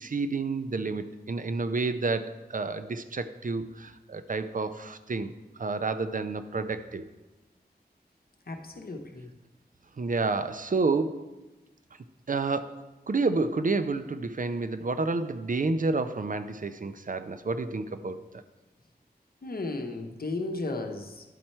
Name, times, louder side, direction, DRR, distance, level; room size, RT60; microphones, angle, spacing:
voice 1, 0.0-5.3 5.6-7.1 10.0-11.3 12.3-12.7 13.1-18.2, right 3 dB, 55° right, 11 dB, 0.5 m, -29 dB
voice 2, 8.5-9.3 19.4-21.2, left 2 dB, 65° left, 4 dB, 0.8 m, -34 dB
10.5 x 4.4 x 4.4 m, 1.1 s
wide cardioid pair, 65°, 17 cm